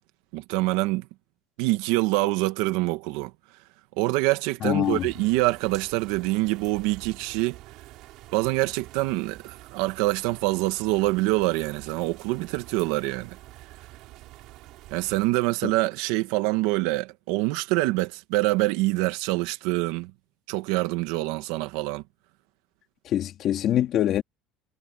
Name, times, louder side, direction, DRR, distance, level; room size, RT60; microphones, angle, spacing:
voice 1, 0.3-1.1 1.6-3.3 4.0-7.6 8.3-13.4 14.9-20.1 20.5-22.0, right 20 dB, 80° right, 1.6 m, -25 dB
voice 2, 4.6-5.1 15.6-15.7 23.0-24.2, left 11 dB, 40° left, 2.8 m, -24 dB
sound 1, 4.8-15.3, right 17 dB, 55° right, 5.2 m, -47 dB
cardioid pair, 175°, 0 cm